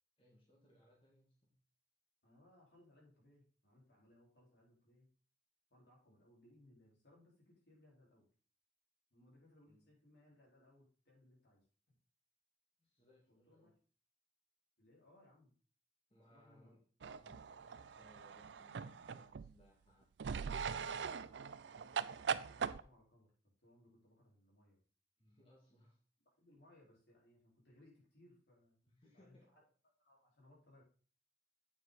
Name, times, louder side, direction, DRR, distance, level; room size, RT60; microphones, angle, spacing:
voice 1, 0.2-1.5 9.7-9.9 12.8-13.7 16.1-16.8 17.1-20.1 25.2-26.0 28.8-29.5, left 1 dB, 30° left, -3 dB, 2.0 m, -68 dB
voice 2, 2.2-5.1 5.7-8.3 9.1-12.0 13.3-13.7 14.8-15.5 16.3-16.7 21.5-23.3 23.6-24.8 26.4-28.8 29.1-29.6 30.0-30.8, left 1 dB, 75° left, -4 dB, 4.5 m, -67 dB
sound 1, 17.0-19.6 20.2-22.8, right 6 dB, 85° right, 0.4 m, -41 dB
8.6 x 6.8 x 4.1 m, 0.42 s
head